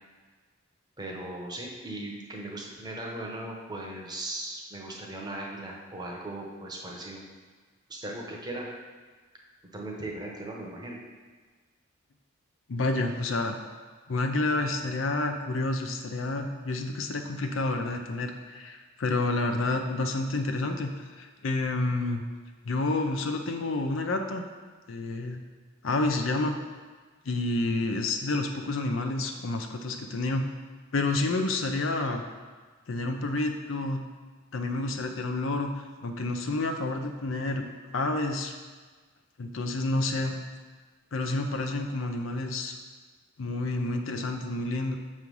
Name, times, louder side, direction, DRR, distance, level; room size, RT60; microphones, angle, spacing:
voice 1, 1.0-7.2 7.9-8.7 9.7-11.0, right 1 dB, 20° right, -1 dB, 0.9 m, -38 dB
voice 2, 12.7-13.6 14.1-22.2 22.6-24.4 24.9-25.4 25.8-26.6 27.3-30.4 30.9-32.2 32.9-34.0 34.5-35.7 36.0-37.7 37.9-38.5 39.4-40.4 41.1-42.7 43.4-45.0, left 2 dB, 70° left, 5 dB, 0.6 m, -29 dB
7.0 x 3.2 x 5.3 m, 1.4 s
head